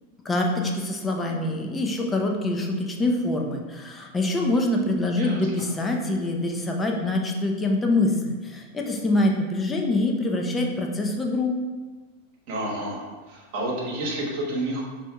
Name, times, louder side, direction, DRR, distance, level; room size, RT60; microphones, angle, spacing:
voice 1, 0.2-11.5, left 2 dB, 15° left, 1 dB, 0.6 m, -25 dB
voice 2, 12.5-14.8, right 1 dB, 45° right, -3 dB, 1.1 m, -30 dB
5.3 x 2.7 x 3.4 m, 1.4 s
figure-of-eight pair, 90°, 0 cm